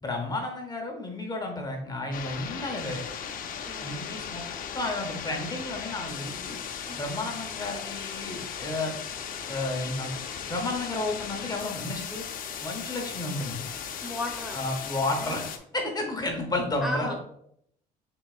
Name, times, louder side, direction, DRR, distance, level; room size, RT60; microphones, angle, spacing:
voice 1, 0.0-3.0 3.8-4.4 4.7-6.6 6.9-8.9 9.5-10.2 10.5-12.2 12.6-13.6 14.5-15.4 15.7-17.1, left 2 dB, 25° left, 2 dB, 0.9 m, -32 dB
sound 1, 2.1-15.6, left 7 dB, 55° left, 0.6 m, -37 dB
voice 2, 3.7-4.1 6.8-7.0 14.0-14.6 15.2-15.3 16.8-17.1, left 1 dB, ahead, 0 dB, 1.0 m, -34 dB
5.7 x 3.8 x 2.4 m, 0.72 s
cardioid pair, 110°, 17 cm